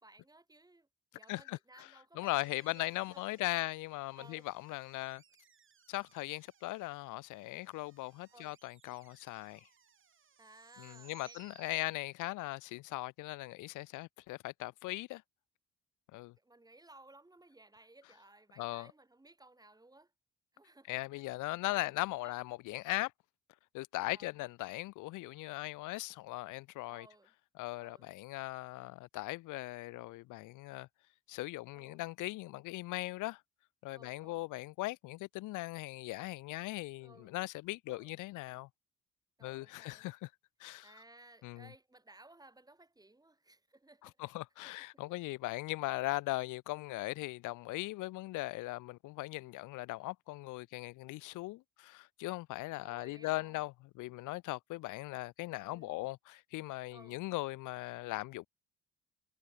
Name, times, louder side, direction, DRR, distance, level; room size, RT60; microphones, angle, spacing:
voice 1, 0.0-3.4 4.1-4.4 8.3-8.6 10.4-11.4 16.4-20.1 20.5-21.2 21.6-22.4 24.1-24.3 26.9-27.3 27.8-28.1 31.7-32.1 33.9-34.5 37.0-37.4 37.9-38.1 39.4-40.1 40.8-44.3 44.8-44.9 52.8-53.6 55.7-56.1 56.9-57.2, right 2 dB, 10° right, 1.9 m, -60 dB
voice 2, 1.3-1.9 2.2-5.2 5.9-9.7 10.8-15.2 16.1-16.3 18.6-18.9 20.9-23.1 23.7-27.1 27.6-30.9 31.3-33.4 33.8-38.7 39.4-40.3 40.6-40.9 41.4-41.7 44.2-58.5, left 20 dB, 90° left, 0.6 m, -39 dB
sound 1, 2.2-12.5, right 7 dB, 40° right, 1.8 m, -65 dB
cardioid pair, 90°, 30 cm